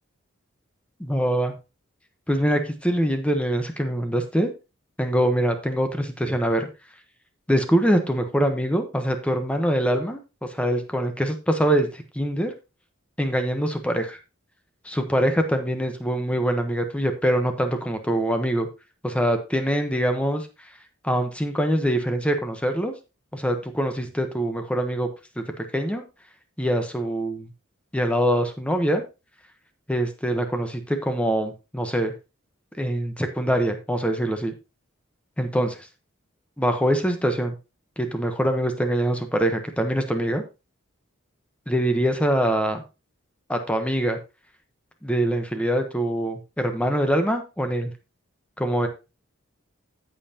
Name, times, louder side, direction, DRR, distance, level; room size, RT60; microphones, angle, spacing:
voice 1, 1.0-1.5 2.3-4.5 5.0-6.7 7.5-10.2 10.5-12.5 13.2-14.2 14.8-18.7 19.0-20.5 21.0-22.9 23.3-25.1 25.4-26.0 26.6-27.5 27.9-29.0 29.9-32.1 32.8-34.5 35.4-35.8 36.6-37.6 38.0-40.4 41.7-42.8 43.5-44.2 45.0-47.9 48.6-48.9, equal, 5° left, 6 dB, 1.0 m, -24 dB
15.5 x 5.6 x 2.9 m, 0.28 s
head